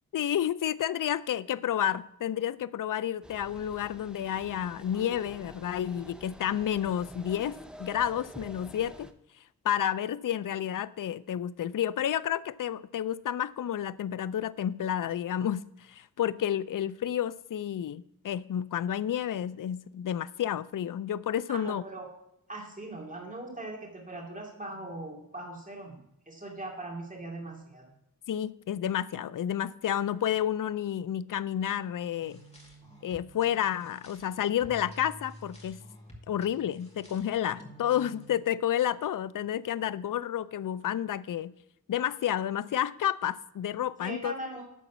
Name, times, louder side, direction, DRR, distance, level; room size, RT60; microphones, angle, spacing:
voice 1, 0.1-7.5 7.8-9.1 9.6-21.8 28.3-32.4 33.0-35.8 36.3-41.5 41.9-44.3, left 10 dB, 60° left, 0.5 m, -30 dB
sound 1, 3.2-9.1, equal, ahead, 0.7 m, -48 dB
voice 2, 21.5-22.1 22.5-26.0 26.3-27.9 44.0-44.6, right 2 dB, 20° right, 2.6 m, -40 dB
sound 2, 32.2-38.3, equal, 15° left, 2.3 m, -50 dB
12.0 x 4.1 x 7.2 m
wide cardioid pair, 60°, 36 cm